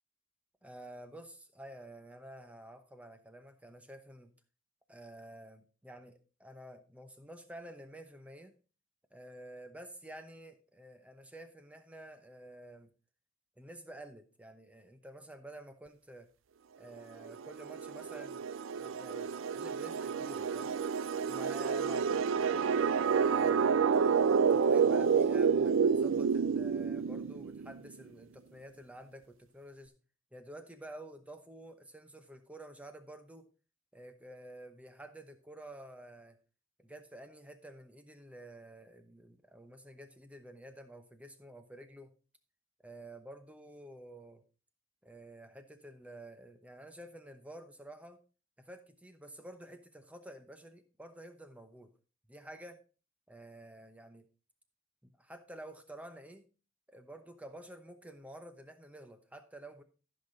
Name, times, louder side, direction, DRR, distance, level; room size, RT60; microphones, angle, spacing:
voice 1, 0.6-4.3 4.9-8.5 9.1-12.9 13.6-16.3 16.8-18.3 18.7-20.8 21.3-23.8 24.5-29.9 30.3-33.5 33.9-36.4 36.8-42.1 42.8-44.4 45.0-48.2 48.6-51.9 52.3-52.8 53.3-54.2 55.0-56.5 56.9-59.8, right 1 dB, 5° right, 8 dB, 0.9 m, -50 dB
sound 1, 17.3-27.8, right 6 dB, 75° right, 0.4 m, -29 dB
14.0 x 5.8 x 3.9 m, 0.35 s
head